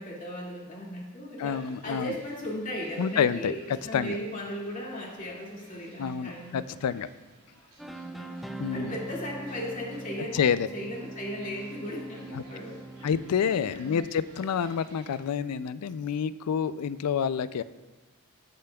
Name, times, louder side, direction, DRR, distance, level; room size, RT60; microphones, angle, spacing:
voice 1, 0.0-6.7 8.0-13.1 13.7-14.0, equal, 35° left, -4 dB, 2.2 m, -37 dB
voice 2, 1.4-2.1 3.0-3.5 3.9-4.2 6.0-7.1 8.6-8.9 10.3-10.7 12.3-12.4 13.0-17.6, left 7 dB, 85° left, 15 dB, 0.4 m, -28 dB
sound 1, 1.5-15.2, right 2 dB, 70° right, 2.6 m, -56 dB
sound 2, 7.8-13.7, right 2 dB, ahead, 0.4 m, -42 dB
17.0 x 6.9 x 2.3 m, 1.1 s
head